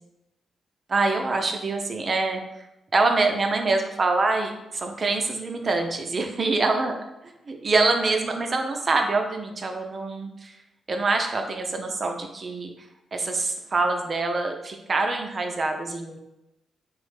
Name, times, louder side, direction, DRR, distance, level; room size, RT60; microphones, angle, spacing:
voice 1, 0.9-2.7 2.9-7.0 7.2-10.6 10.9-12.7 13.1-16.2, right 3 dB, 50° right, 4 dB, 0.4 m, -25 dB
3.0 x 2.0 x 3.2 m, 0.91 s
supercardioid pair, 45°, 0 cm